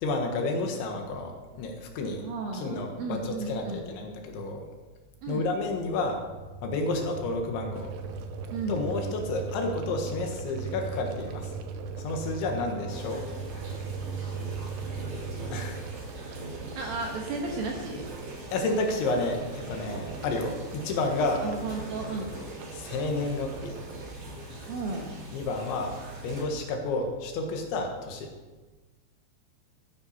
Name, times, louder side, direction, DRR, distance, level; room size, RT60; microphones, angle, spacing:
voice 1, 0.0-2.2 2.5-4.7 5.3-6.2 6.6-7.9 8.7-11.5 12.0-13.3 15.5-15.8 18.5-21.5 22.7-23.7 25.3-26.0 26.2-28.3, left 2 dB, 75° left, 3 dB, 3.7 m, -30 dB
voice 2, 2.2-3.9 5.2-5.5 8.5-8.9 16.8-18.1 21.4-22.3 24.7-25.2, right 3 dB, 65° right, 0 dB, 2.4 m, -34 dB
sound 1, 5.7-15.7, right 4 dB, 45° left, 1.9 m, -38 dB
sound 2, 7.7-24.2, right 6 dB, 85° right, 3.5 m, -44 dB
sound 3, 12.9-26.4, right 1 dB, 40° right, 3.8 m, -42 dB
15.0 x 9.6 x 5.5 m, 1.2 s
omnidirectional pair, 5.7 m